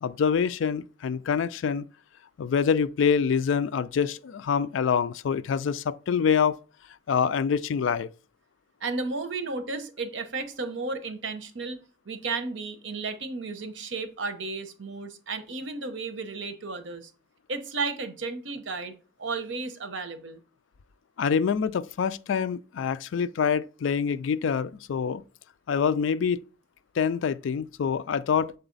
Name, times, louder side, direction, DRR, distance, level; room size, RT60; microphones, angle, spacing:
voice 1, 0.0-1.8 2.4-6.6 7.1-8.1 21.2-25.2 25.7-26.4 27.0-28.5, left 6 dB, 70° left, 0.3 m, -25 dB
voice 2, 8.8-11.8 12.1-17.1 17.5-20.4, right 3 dB, 70° right, 0.8 m, -33 dB
6.9 x 4.0 x 3.9 m
head